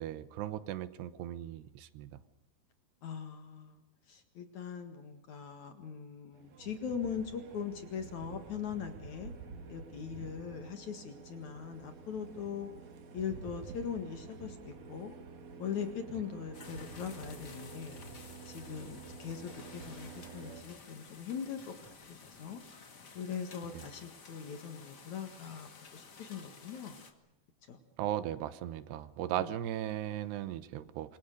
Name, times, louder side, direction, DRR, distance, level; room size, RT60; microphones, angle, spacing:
voice 1, 0.0-2.2 23.7-23.8 28.0-31.2, right 12 dB, 80° right, 14 dB, 3.1 m, -37 dB
voice 2, 3.0-3.8 4.1-9.3 9.7-12.7 13.1-15.2 15.6-18.0 18.5-22.6 23.1-27.0 27.7-27.8 29.3-29.4, left 7 dB, 55° left, 7 dB, 2.7 m, -41 dB
sound 1, 6.3-20.6, right 4 dB, 50° right, 2.6 m, -49 dB
sound 2, 16.5-27.1, left 5 dB, 35° left, 1.7 m, -53 dB
26.5 x 22.5 x 6.6 m, 0.92 s
omnidirectional pair, 4.8 m